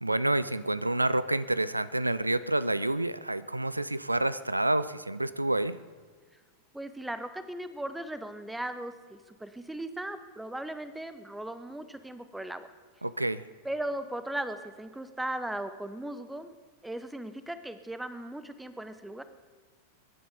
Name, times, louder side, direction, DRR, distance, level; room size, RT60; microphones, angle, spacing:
voice 1, 0.0-5.8 13.0-13.4, right 1 dB, 85° right, 17 dB, 0.4 m, -28 dB
voice 2, 6.7-12.7 13.6-16.6 16.8-19.2, right 1 dB, 5° right, 11 dB, 0.9 m, -37 dB
22.0 x 11.0 x 5.2 m, 1.5 s
figure-of-eight pair, 90°, 0 cm